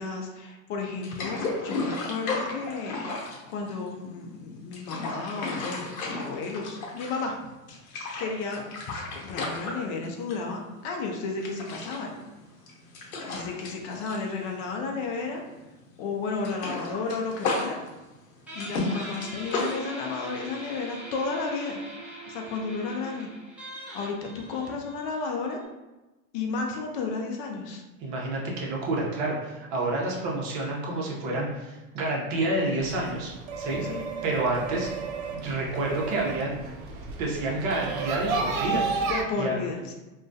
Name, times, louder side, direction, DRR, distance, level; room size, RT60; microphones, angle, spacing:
voice 1, 0.0-7.3 7.8-8.6 8.9-12.2 13.3-15.4 16.0-17.8 18.5-21.8 22.3-23.3 23.9-25.6 26.3-27.8 33.9-34.0 39.0-39.9, left 4 dB, 50° left, 2 dB, 0.4 m, -33 dB
sound 1, 1.0-4.1 4.5-7.4 7.7-10.5 10.8-11.0 11.4-15.2 15.5-15.7 16.0-19.8, left 3 dB, 80° left, 0.8 m, -34 dB
Guitar, 18.5-25.7, right 1 dB, 5° right, 0.5 m, -42 dB
voice 2, 28.0-33.8 34.2-34.9 35.3-36.6 37.2-38.8 39.4-39.6, right 2 dB, 45° right, -3 dB, 0.7 m, -29 dB
sound 2, 32.8-39.2, right 4 dB, 85° right, 0.5 m, -32 dB
2.2 x 2.2 x 2.5 m, 1.1 s
hypercardioid pair, 115°, 41 cm